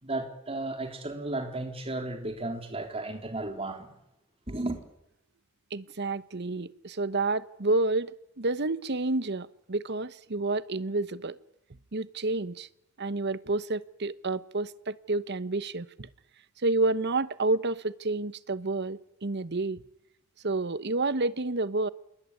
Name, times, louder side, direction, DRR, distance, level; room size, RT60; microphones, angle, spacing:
voice 1, 0.0-4.0 4.5-4.8, right 2 dB, 25° right, 3.7 m, -34 dB
voice 2, 5.7-8.1 8.4-11.4 11.9-12.7 13.0-16.1 16.6-19.8 20.4-21.9, right 2 dB, 50° right, 1.0 m, -29 dB
27.5 x 21.0 x 9.8 m
head